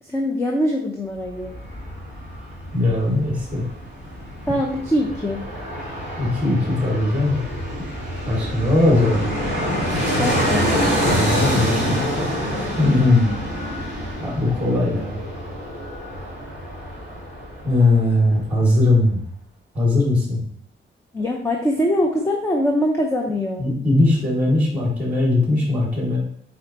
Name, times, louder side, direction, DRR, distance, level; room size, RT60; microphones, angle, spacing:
voice 1, 0.0-1.6 4.5-5.4 10.2-10.7 21.1-23.7, equal, 10° left, 1 dB, 0.6 m, -22 dB
Fixed-wing aircraft airplane, 1.2-18.1 18.4-18.5, equal, 55° left, 2.3 m, -26 dB
voice 2, 2.7-3.6 6.2-7.4 8.3-9.3 11.0-12.0 12.8-13.3 14.2-15.2 17.6-19.2 19.7-20.4 23.6-26.2, left 2 dB, 5° right, -4 dB, 2.5 m, -19 dB
8.8 x 4.2 x 3.0 m, 0.65 s
wide cardioid pair, 170°, 21 cm